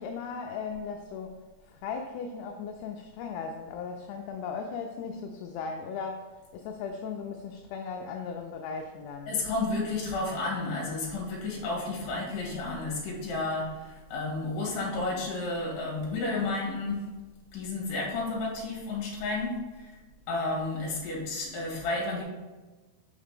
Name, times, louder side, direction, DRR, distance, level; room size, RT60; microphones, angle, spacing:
voice 1, 0.0-9.4, left 5 dB, 85° left, 3 dB, 2.4 m, -37 dB
voice 2, 9.3-17.0 17.5-19.6 20.3-22.2, left 3 dB, 60° left, -3 dB, 2.7 m, -31 dB
6.4 x 4.9 x 3.6 m, 1.2 s
omnidirectional pair, 5.1 m